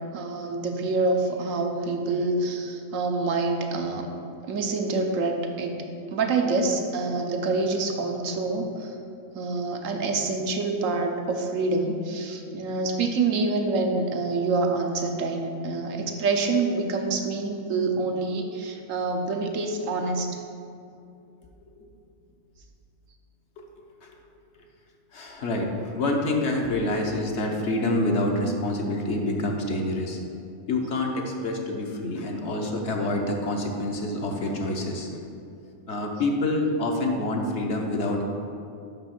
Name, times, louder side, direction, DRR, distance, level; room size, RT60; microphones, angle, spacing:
voice 1, 0.0-4.1 4.4-5.8 6.1-9.0 9.3-20.4, right 3 dB, 75° right, 4 dB, 1.1 m, -26 dB
voice 2, 25.1-30.2 30.7-35.1 35.9-38.2, left 2 dB, 60° left, 1 dB, 1.1 m, -27 dB
6.0 x 5.4 x 5.8 m, 2.6 s
omnidirectional pair, 1.4 m